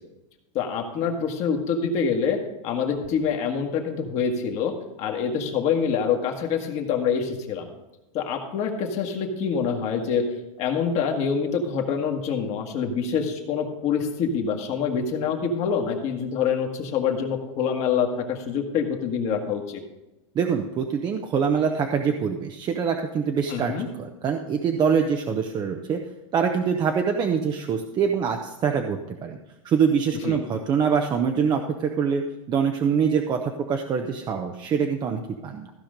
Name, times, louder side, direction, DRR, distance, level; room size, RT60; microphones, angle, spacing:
voice 1, 0.5-2.4 2.6-4.7 5.0-7.7 8.1-10.2 10.6-19.8 23.5-23.9 30.2-30.4, left 6 dB, 40° left, 2 dB, 1.6 m, -26 dB
voice 2, 20.3-23.7 24.0-26.0 26.3-29.4 29.6-35.7, right 6 dB, 25° right, 4 dB, 0.7 m, -24 dB
15.0 x 5.0 x 5.1 m, 0.99 s
supercardioid pair, 135°, 17 cm